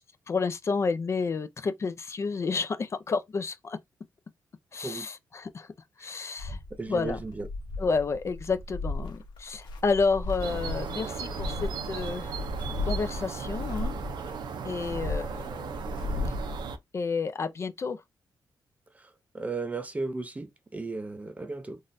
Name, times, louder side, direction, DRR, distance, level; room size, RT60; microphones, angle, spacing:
voice 1, 0.3-3.8 4.7-5.7 6.0-6.6 6.9-7.2 7.8-12.4 12.8-13.9 14.6-15.8 16.9-18.0, left 4 dB, 40° left, 0.4 m, -30 dB
sound 1, 6.4-16.6, left 2 dB, 90° left, 1.0 m, -35 dB
voice 2, 6.7-7.5 18.9-21.8, right 3 dB, 20° right, 0.5 m, -35 dB
sound 2, 10.4-16.8, right 6 dB, 75° right, 0.6 m, -37 dB
3.8 x 2.5 x 2.6 m
wide cardioid pair, 125°, 8 cm